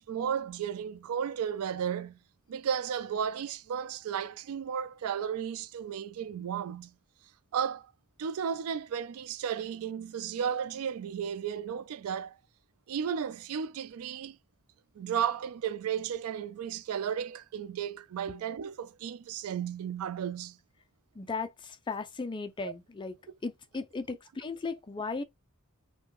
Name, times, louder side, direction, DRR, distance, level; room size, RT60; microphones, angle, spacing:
voice 1, 0.0-2.2 2.5-6.9 7.5-7.9 8.2-12.4 12.9-14.4 15.0-20.6 22.6-22.7, right 8 dB, 80° right, 0.3 m, -34 dB
voice 2, 21.2-23.1 23.4-25.2, left 4 dB, 20° left, 0.3 m, -36 dB
3.0 x 2.1 x 3.4 m
head